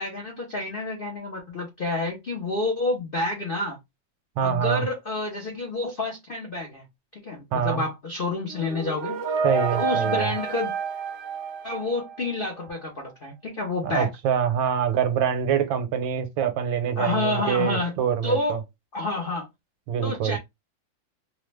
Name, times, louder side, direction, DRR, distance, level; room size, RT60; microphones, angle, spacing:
voice 1, 0.0-3.8 4.4-6.8 7.1-9.2 9.7-10.7 11.6-14.1 17.0-17.9 18.2-18.6 18.9-19.5 20.0-20.4, left 2 dB, 70° left, 0.5 m, -29 dB
voice 2, 4.4-4.8 7.5-7.8 9.4-10.3 13.8-18.6 19.9-20.4, right 8 dB, 80° right, 1.4 m, -25 dB
sound 1, 8.5-12.4, right 5 dB, 60° right, 0.7 m, -29 dB
3.3 x 2.0 x 3.2 m
omnidirectional pair, 2.1 m